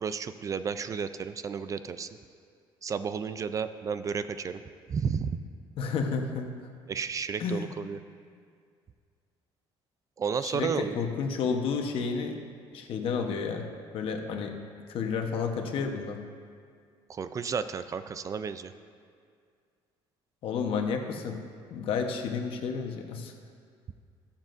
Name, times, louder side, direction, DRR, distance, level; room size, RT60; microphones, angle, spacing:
voice 1, 0.0-2.1 2.8-4.6 4.9-5.4 6.9-8.0 10.2-11.0 17.1-18.7, right 6 dB, 30° right, 11 dB, 0.4 m, -32 dB
voice 2, 5.8-6.5 7.4-7.7 10.4-12.4 12.7-13.7 13.9-14.5 14.9-16.2 20.4-21.4 21.7-23.3, left 5 dB, 60° left, 4 dB, 1.0 m, -31 dB
21.5 x 7.3 x 2.6 m, 2.2 s
cardioid pair, 120°, 10 cm